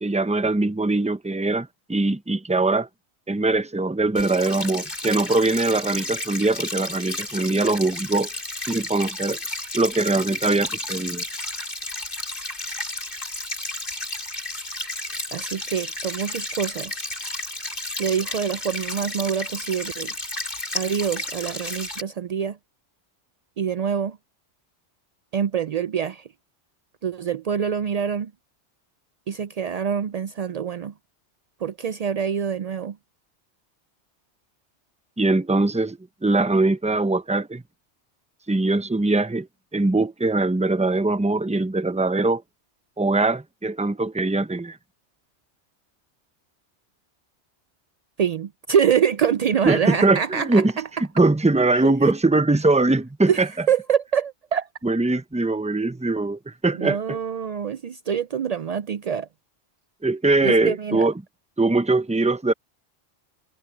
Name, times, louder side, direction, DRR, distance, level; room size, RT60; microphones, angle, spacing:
voice 1, 0.0-2.9 3.3-8.3 8.7-9.4 9.7-11.2 35.2-37.6 38.5-39.5 39.7-42.4 43.0-44.8 49.6-50.7 51.2-53.5 54.8-57.0 60.0-61.1 61.6-62.5, right 2 dB, 10° right, 0.5 m, -22 dB
sound 1, 4.2-22.0, left 2 dB, 45° left, 4.6 m, -32 dB
voice 2, 15.3-17.1 18.0-20.1 20.7-22.6 23.6-24.2 25.3-26.3 27.0-28.3 29.3-30.9 31.6-33.0 48.2-50.9 51.8-52.1 53.3-54.7 56.8-59.3 60.4-61.1, right 7 dB, 80° right, 0.3 m, -25 dB
omnidirectional pair, 1.2 m